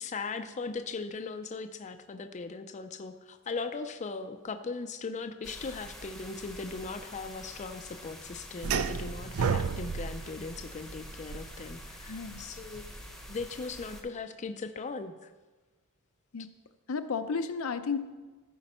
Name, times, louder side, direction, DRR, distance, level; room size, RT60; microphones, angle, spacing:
voice 1, 0.0-12.9 13.3-15.3, left 4 dB, 35° left, 8 dB, 0.4 m, -39 dB
sound 1, 5.4-14.0, left 1 dB, ahead, 0.9 m, -47 dB
sound 2, 8.6-13.6, right 6 dB, 80° right, 0.4 m, -33 dB
voice 2, 12.1-12.5 16.3-16.5 16.9-18.0, left 5 dB, 80° left, 9 dB, 0.6 m, -33 dB
14.0 x 5.2 x 4.3 m, 1.2 s
head